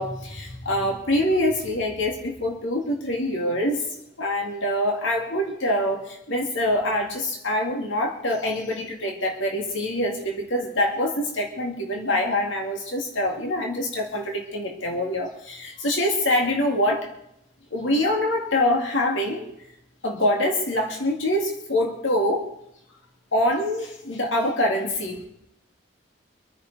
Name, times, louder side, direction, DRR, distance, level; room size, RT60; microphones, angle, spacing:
voice 1, 0.0-3.8 4.2-17.1 17.7-19.5 20.0-22.5 23.3-25.3, left 1 dB, 70° left, 1 dB, 2.2 m, -25 dB
25.5 x 9.7 x 4.0 m, 0.80 s
head